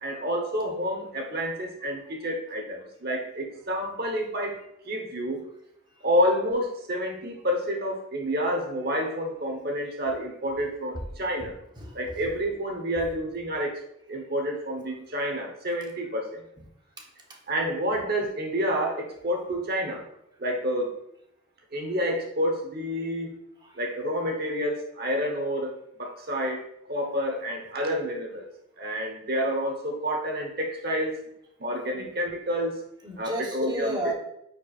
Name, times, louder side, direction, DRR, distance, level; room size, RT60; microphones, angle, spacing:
voice 1, 0.0-4.6 4.9-5.5 6.0-11.5 11.9-13.8 14.1-16.4 17.5-20.0 20.4-20.9 21.7-23.4 23.7-28.5 28.8-31.2 31.6-32.8 33.2-34.0, equal, 50° right, 2 dB, 1.1 m, -29 dB
voice 2, 11.7-12.3 17.0-17.4 23.6-23.7 31.9-32.1 33.0-34.1, right 1 dB, 20° right, 1 dB, 1.0 m, -34 dB
9.4 x 4.7 x 2.5 m, 0.78 s
head